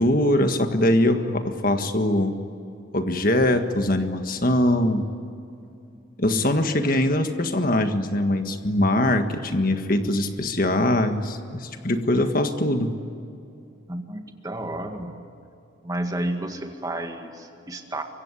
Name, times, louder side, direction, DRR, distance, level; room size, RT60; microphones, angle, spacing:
voice 1, 0.0-2.3 2.9-5.1 6.2-12.9, left 1 dB, 45° left, 7 dB, 1.7 m, -22 dB
voice 2, 13.9-15.1 15.8-18.0, right 1 dB, 20° right, 4 dB, 2.0 m, -31 dB
24.5 x 24.0 x 9.9 m, 2.6 s
head